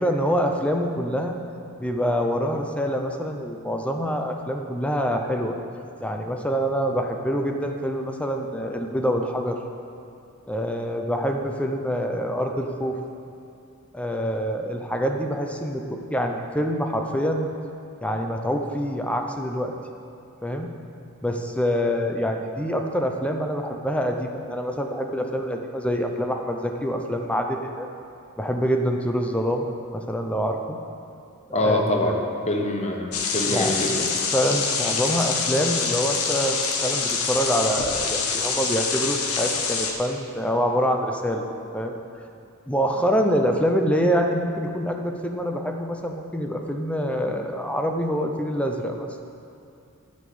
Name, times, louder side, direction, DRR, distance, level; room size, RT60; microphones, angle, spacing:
voice 1, 0.0-1.4 1.8-5.5 6.0-9.6 10.5-13.0 13.9-17.5 18.0-19.7 20.4-20.7 21.2-27.9 28.4-29.7 29.9-30.8 31.5-32.3 33.4-41.5 41.7-41.9 42.7-49.1, equal, 5° left, 3 dB, 0.7 m, -26 dB
voice 2, 31.5-34.0, left 1 dB, 30° left, 1 dB, 1.0 m, -25 dB
sound 1, 33.1-39.9, left 5 dB, 80° left, 1.1 m, -26 dB
10.0 x 5.3 x 7.8 m, 2.6 s
head